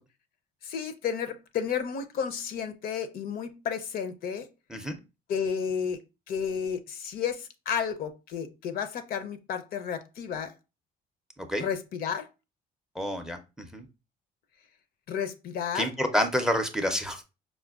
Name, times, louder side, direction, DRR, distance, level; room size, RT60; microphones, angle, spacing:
voice 1, 0.6-4.5 5.3-6.0 6.3-10.5 11.6-12.3 15.1-15.9, left 7 dB, 60° left, 0.5 m, -32 dB
voice 2, 13.0-13.9 15.7-17.2, equal, 5° right, 0.4 m, -28 dB
4.8 x 2.1 x 2.3 m
cardioid pair, 110°, 17 cm